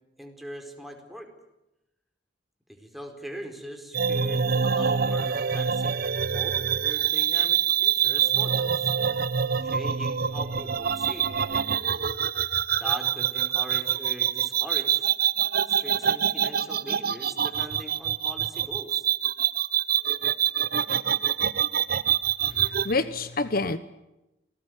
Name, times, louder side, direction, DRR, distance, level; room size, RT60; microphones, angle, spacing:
voice 1, 0.2-1.3 2.7-6.0 6.3-8.9 9.6-11.3 12.8-15.1 15.7-19.1, equal, ahead, 4.6 m, -41 dB
sound 1, 3.9-22.9, right 8 dB, 60° right, 0.9 m, -25 dB
voice 2, 22.5-23.8, left 3 dB, 55° left, 1.1 m, -28 dB
28.5 x 19.5 x 9.5 m
head